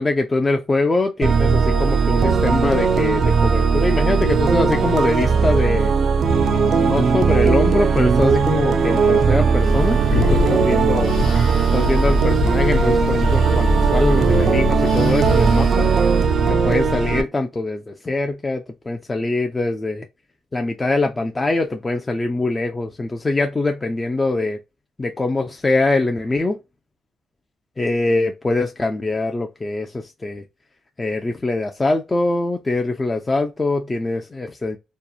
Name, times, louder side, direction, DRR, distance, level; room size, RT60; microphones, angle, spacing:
voice 1, 0.0-5.9 6.6-11.1 11.7-15.9 16.5-20.1 20.5-24.6 25.0-26.6 27.8-30.4 31.0-34.8, left 2 dB, 20° left, 0.3 m, -23 dB
sound 1, 1.2-17.2, right 5 dB, 55° right, 0.3 m, -18 dB
Breathing, 9.4-16.0, left 3 dB, 70° left, 0.9 m, -25 dB
2.8 x 2.0 x 2.3 m
cardioid pair, 90°, 0 cm